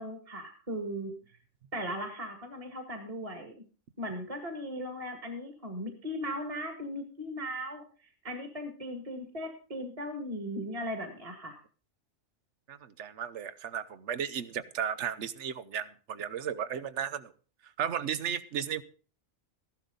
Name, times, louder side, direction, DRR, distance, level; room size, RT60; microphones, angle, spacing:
voice 1, 0.0-1.4 1.7-3.6 4.0-11.6, equal, 25° right, 2.1 m, -38 dB
voice 2, 12.7-17.3 17.6-18.8, right 8 dB, 65° right, 1.1 m, -35 dB
14.5 x 12.0 x 3.9 m
omnidirectional pair, 1.3 m